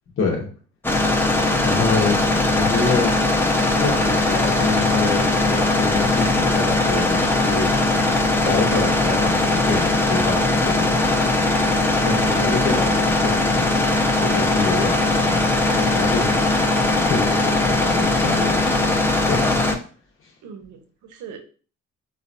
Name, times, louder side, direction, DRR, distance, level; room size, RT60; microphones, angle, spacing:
voice 1, 0.2-0.5 1.6-2.2 2.5-3.1 3.8-7.7 8.4-11.0 12.0-13.9 14.2-16.5 17.1-19.6, left 4 dB, 45° left, 0 dB, 0.8 m, -27 dB
sound 1, 0.8-19.7, left 2 dB, 5° left, 0.5 m, -20 dB
voice 2, 12.4-13.1 20.4-21.4, right 6 dB, 80° right, 7 dB, 0.7 m, -38 dB
3.9 x 2.2 x 2.5 m, 0.39 s
cardioid pair, 90°, 30 cm